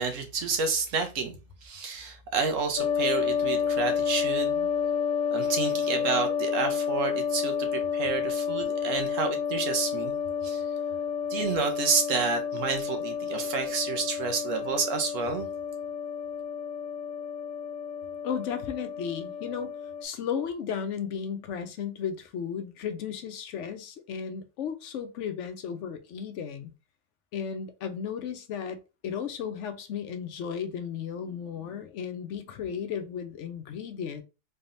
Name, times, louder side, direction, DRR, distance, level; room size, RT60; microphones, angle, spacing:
voice 1, 0.0-4.7 5.3-10.1 10.4-10.6 11.3-15.5, right 5 dB, 75° right, 1.2 m, -30 dB
sound 1, 2.8-20.0, left 7 dB, 45° left, 0.6 m, -30 dB
voice 2, 18.2-19.7 20.0-26.7 27.3-34.2, left 7 dB, 70° left, 0.9 m, -34 dB
3.9 x 3.4 x 2.6 m
omnidirectional pair, 1.3 m